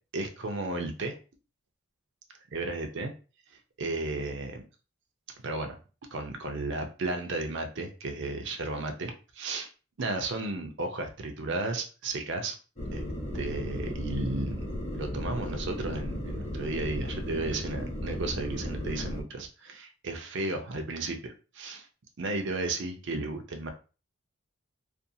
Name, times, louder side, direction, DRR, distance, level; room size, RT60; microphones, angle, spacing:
voice 1, 0.1-1.2 2.5-3.1 3.8-4.6 5.4-5.8 6.1-9.7 10.0-12.6 12.9-13.0 13.3-21.9 22.2-23.7, right 2 dB, 55° right, 5 dB, 0.5 m, -34 dB
sound 1, 12.8-19.2, left 1 dB, 30° left, 0.8 m, -35 dB
2.5 x 2.3 x 2.7 m, 0.34 s
head